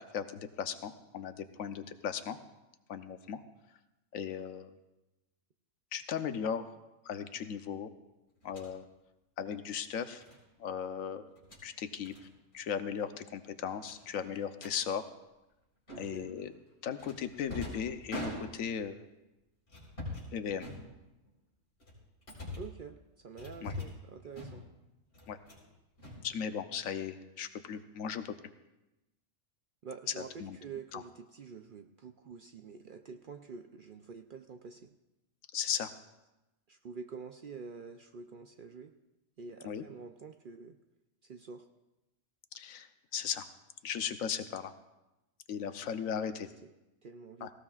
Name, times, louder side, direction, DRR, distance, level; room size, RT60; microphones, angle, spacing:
voice 1, 0.0-2.4 2.9-3.4 4.1-4.7 5.9-6.7 7.0-7.9 8.4-8.8 9.4-10.2 10.6-11.3 11.6-12.1 12.5-15.1 16.0-16.5 16.8-19.0 20.3-20.7 23.6-23.7 25.3-25.4 26.2-28.4 30.4-30.6 30.9-31.0 35.5-35.9 39.6-39.8 42.5-42.9 43.1-43.4 43.8-44.7 45.5-46.5 47.4-47.5, left 8 dB, 85° left, 10 dB, 1.1 m, -37 dB
sound 1, 8.4-8.7 10.2-10.4 11.3-11.6 12.0-12.2 12.5-12.7 13.0-13.1 13.8-14.8 15.9-16.3 17.0-18.9 19.7-20.3 20.6-21.3 21.8-22.8 23.4-24.0 24.3-24.8 25.1-25.7 26.0-26.8, left 1 dB, 50° left, 4.3 m, -44 dB
voice 2, 15.9-16.3 22.5-24.7 29.8-34.9 36.7-38.9 39.4-40.8 41.2-41.7 46.2-46.7 47.0-47.5, right 5 dB, 60° right, 7 dB, 0.6 m, -47 dB
18.5 x 16.5 x 2.4 m, 0.99 s
omnidirectional pair, 1.4 m